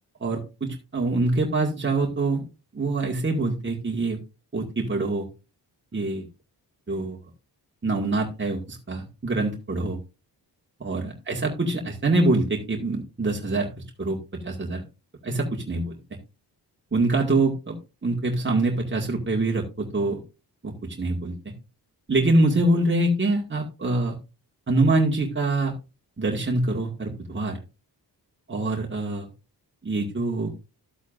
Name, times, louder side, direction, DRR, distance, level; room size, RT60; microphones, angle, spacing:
voice 1, 0.2-2.5 2.7-4.2 4.5-5.3 5.9-6.3 6.9-7.2 7.8-10.0 10.8-14.2 14.4-14.8 15.2-16.0 16.9-17.8 18.0-20.2 20.6-21.5 22.1-24.2 24.7-25.7 26.2-27.6 28.5-29.3 29.8-30.5, right 2 dB, 30° right, -1 dB, 2.0 m, -25 dB
13.0 x 8.1 x 2.5 m, 0.29 s
cardioid pair, 80°, 40 cm